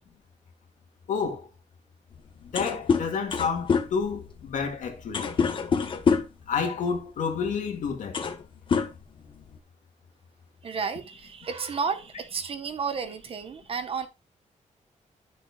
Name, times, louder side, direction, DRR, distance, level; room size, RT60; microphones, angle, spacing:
voice 1, 1.1-1.5 2.5-5.3 6.5-8.2, left 6 dB, 80° left, 2.1 m, -29 dB
sound 1, 2.1-2.2 2.4-6.4 7.4-7.6 8.0-8.4 8.7-9.6, left 5 dB, 40° left, 1.0 m, -26 dB
voice 2, 10.6-14.1, right 5 dB, 45° right, 1.1 m, -32 dB
13.0 x 6.4 x 2.3 m
wide cardioid pair, 180°, 13 cm